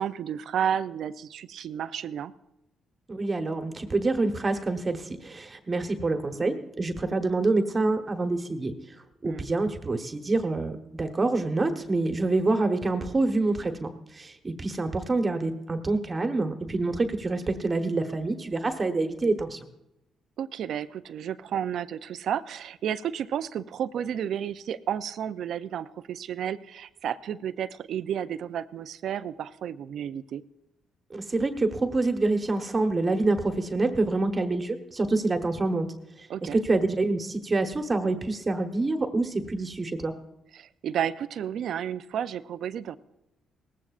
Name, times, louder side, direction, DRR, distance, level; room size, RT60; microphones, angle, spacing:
voice 1, 0.0-2.3 9.2-9.5 20.4-30.4 36.3-36.6 40.5-43.0, right 9 dB, 70° right, 13 dB, 0.4 m, -32 dB
voice 2, 3.1-8.7 9.2-19.7 31.1-35.9 36.2-36.3 36.5-40.1, right 3 dB, 30° right, 6 dB, 1.1 m, -26 dB
18.5 x 15.0 x 2.5 m, 0.88 s
cardioid pair, 90°, 0 cm